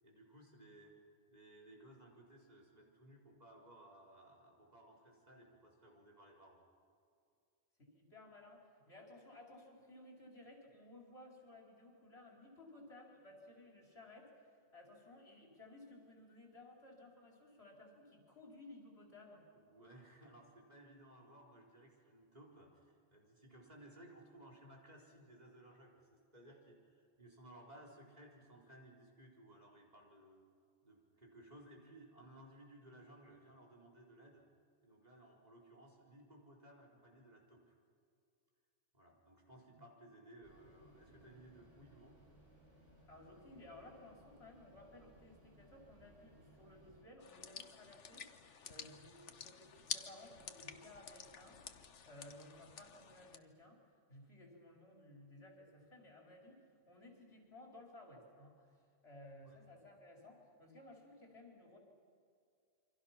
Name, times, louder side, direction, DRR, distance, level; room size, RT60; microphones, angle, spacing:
voice 1, 0.0-0.9 1.3-6.6 19.6-30.4 30.8-34.4 34.8-37.8 38.9-42.2 59.4-59.6, right 1 dB, 35° right, -2 dB, 4.4 m, -60 dB
voice 2, 7.8-19.4 39.5-39.9 43.1-61.8, left 1 dB, 60° left, -1 dB, 4.8 m, -58 dB
sound 1, 40.4-47.0, equal, 80° right, 6.7 m, -64 dB
sound 2, 47.2-53.4, left 7 dB, 75° left, 1.4 m, -50 dB
28.5 x 24.5 x 5.9 m, 2.4 s
omnidirectional pair, 1.2 m